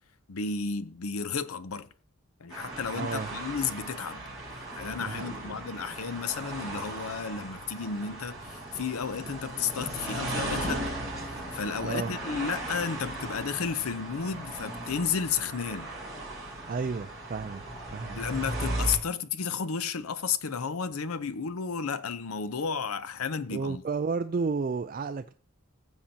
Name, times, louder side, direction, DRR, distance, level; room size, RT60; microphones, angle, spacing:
voice 1, 0.3-1.9 2.4-4.2 4.7-10.9 11.3-15.9 18.2-23.8, left 6 dB, 80° left, 0.6 m, -32 dB
sound 1, 2.5-19.0, right 1 dB, ahead, 4.9 m, -37 dB
voice 2, 2.9-3.3 5.0-5.6 11.8-12.1 16.7-17.6 17.9-18.2 23.5-25.3, right 4 dB, 40° right, 0.3 m, -32 dB
15.5 x 7.3 x 2.8 m
head